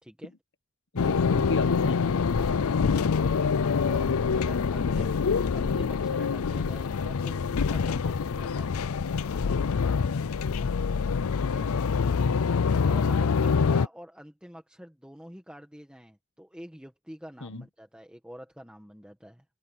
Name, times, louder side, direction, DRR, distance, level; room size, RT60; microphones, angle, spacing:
voice 1, 0.0-0.3 2.3-2.7 3.8-5.2 5.5-8.8 11.3-11.7 12.9-19.4, equal, 5° right, 1.7 m, -46 dB
voice 2, 0.9-2.0 4.7-5.1 8.4-8.6 17.4-17.6, left 2 dB, 55° left, 1.4 m, -34 dB
sound 1, 1.0-13.9, left 5 dB, 75° left, 0.5 m, -25 dB
head